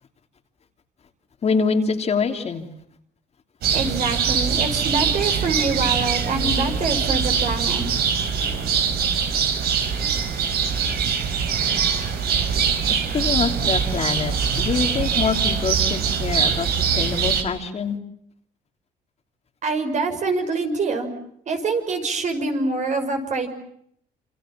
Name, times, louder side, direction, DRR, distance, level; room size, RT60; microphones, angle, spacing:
voice 1, 1.4-2.7 6.3-6.7 12.9-18.0, left 5 dB, 40° left, 4 dB, 3.2 m, -25 dB
sound 1, 3.6-17.4, right 7 dB, 70° right, 5.0 m, -23 dB
voice 2, 3.7-7.9 19.6-21.1 21.5-23.5, right 3 dB, 45° right, 6 dB, 6.2 m, -25 dB
27.5 x 27.0 x 7.5 m, 0.69 s
cardioid pair, 110°, 17 cm